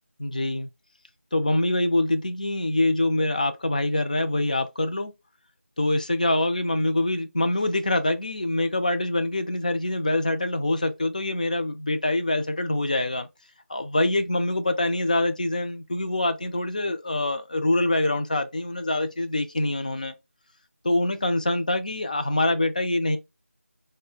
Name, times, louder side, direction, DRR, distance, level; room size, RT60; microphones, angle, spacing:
voice 1, 0.2-0.7 1.3-5.1 5.8-13.3 13.7-20.1 20.8-23.2, left 2 dB, 35° left, 0.4 m, -25 dB
3.8 x 2.1 x 3.6 m
figure-of-eight pair, 170°, 8 cm